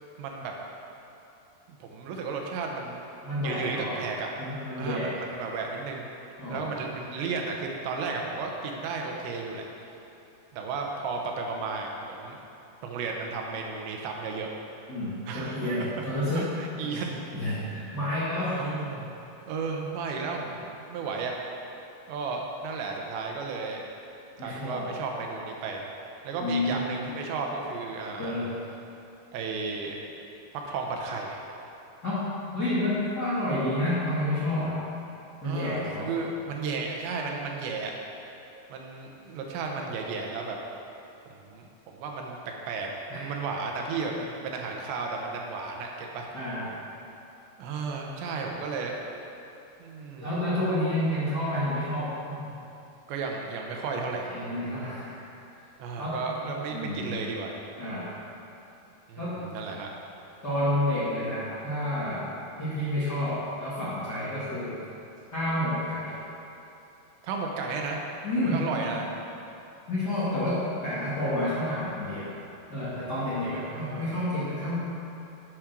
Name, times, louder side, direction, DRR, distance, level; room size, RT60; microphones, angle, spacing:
voice 1, 0.2-0.5 1.7-3.0 3.4-4.3 4.8-6.1 6.5-9.6 10.5-12.4 12.8-14.5 15.3-15.9 16.4-17.2 18.6-19.1 19.5-21.3 22.1-23.8 24.4-25.8 26.2-28.4 29.3-30.0 30.5-31.4 35.4-37.9 38.7-40.6 41.3-46.3 47.6-48.9 49.8-50.3 53.1-54.3 55.8-57.6 59.1-59.9 67.2-68.0 68.4-69.1 73.5-74.1, right 4 dB, 80° right, 1 dB, 3.2 m, -33 dB
voice 2, 3.2-4.0 4.4-5.2 6.4-6.6 14.9-16.5 16.8-17.0 17.3-18.6 24.4-24.9 26.4-26.8 28.2-28.5 32.0-34.8 35.4-36.1 43.1-43.3 46.3-46.7 50.2-52.4 54.3-55.2 56.0-56.2 56.7-57.2 57.8-58.1 59.2-59.5 60.4-64.7 65.3-66.1 68.2-68.7 69.9-72.3 72.7-74.7, left 1 dB, 35° left, -12 dB, 1.8 m, -29 dB
8.9 x 8.6 x 6.1 m, 2.9 s
omnidirectional pair, 5.1 m